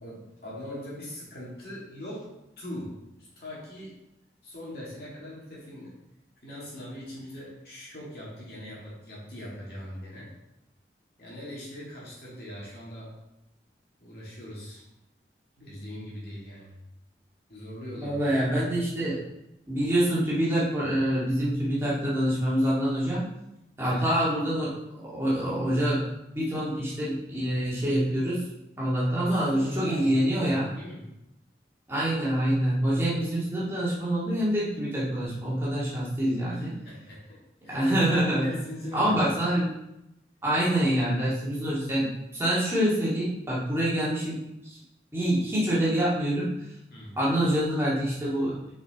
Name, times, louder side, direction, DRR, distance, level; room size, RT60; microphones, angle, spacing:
voice 1, 0.0-2.3 2.6-2.9 3.2-3.9 4.4-5.9 6.4-10.3 11.2-13.1 14.0-14.8 15.6-16.7 17.5-18.3 23.8-24.0 29.2-31.0 36.5-37.4 37.6-37.9 38.2-39.2 46.9-47.1, equal, 60° left, -6 dB, 2.4 m, -41 dB
voice 2, 18.0-19.2 19.7-23.3 23.8-26.1 26.4-28.4 28.8-30.7 31.9-36.7 37.7-38.5 38.9-39.7 40.4-44.8 45.1-46.5 47.2-48.6, right 1 dB, 15° right, -9 dB, 1.9 m, -26 dB
6.0 x 5.1 x 3.7 m, 0.88 s
head